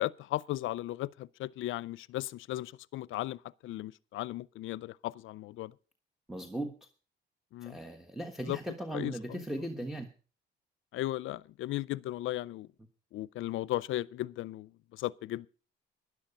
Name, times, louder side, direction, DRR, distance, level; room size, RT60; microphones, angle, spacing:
voice 1, 0.0-5.7 7.5-7.8 8.4-8.6 8.9-9.4 10.9-12.7 13.1-15.5, left 15 dB, 80° left, 0.5 m, -36 dB
voice 2, 6.3-6.7 7.6-10.1, right 1 dB, ahead, 1.3 m, -38 dB
12.0 x 11.0 x 5.4 m
cardioid pair, 90°, 20 cm